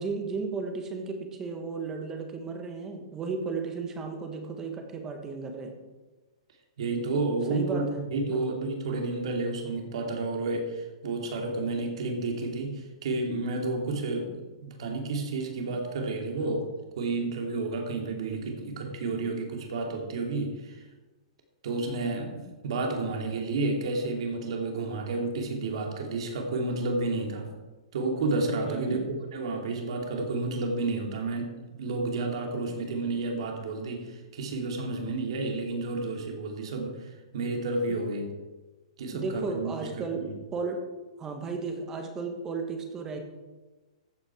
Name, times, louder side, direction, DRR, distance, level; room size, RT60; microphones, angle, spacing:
voice 1, 0.0-5.8 7.5-8.0 8.3-8.5 28.6-29.1 32.7-32.8 37.9-38.0 39.1-40.8 41.2-43.2, right 4 dB, 15° right, 4 dB, 1.3 m, -34 dB
voice 2, 6.8-20.8 21.6-27.5 27.9-29.0 29.3-38.3 39.0-40.3, right 3 dB, 55° right, 2 dB, 2.8 m, -31 dB
14.0 x 8.8 x 4.8 m, 1.2 s
hypercardioid pair, 175°, 4 cm